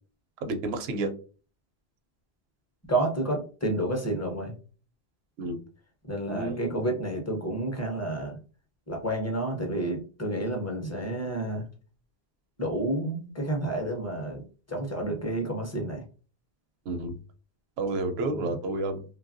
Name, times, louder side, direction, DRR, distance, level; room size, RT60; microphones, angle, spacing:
voice 1, 0.4-1.1 5.4-5.6 6.3-6.8 16.9-17.2 17.8-19.0, right 2 dB, 75° right, 7 dB, 0.8 m, -30 dB
voice 2, 2.9-4.5 6.1-8.3 8.9-11.6 12.6-14.4 14.7-16.0 18.3-18.4, right 1 dB, 20° left, 2 dB, 0.5 m, -30 dB
3.1 x 2.3 x 2.5 m, 0.37 s
omnidirectional pair, 1.1 m